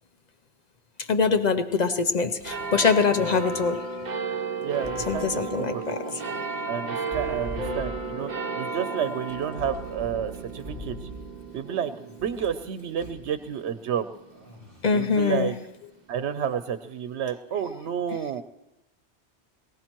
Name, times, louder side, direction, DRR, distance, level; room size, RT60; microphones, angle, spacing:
voice 1, 1.0-3.9 5.1-6.2 14.8-15.6, left 5 dB, 50° left, 0.6 m, -24 dB
sound 1, 2.4-2.7 4.6-5.5 7.0-8.3 9.3-11.5 12.2-13.3, equal, 15° right, 3.6 m, -41 dB
sound 2, 2.4-15.3 16.0-16.1, right 3 dB, 45° right, 0.8 m, -34 dB
sound 3, 2.5-4.5 5.8-6.3 6.9-7.6 8.7-10.0 11.5-12.7 14.3-15.1, left 1 dB, 25° left, 3.9 m, -49 dB
voice 2, 4.6-5.8 6.7-8.3 8.6-11.0 11.5-11.9 12.2-14.1 14.9-15.5 16.1-18.4, right 8 dB, 90° right, 0.9 m, -30 dB
22.5 x 17.5 x 3.0 m
omnidirectional pair, 1.1 m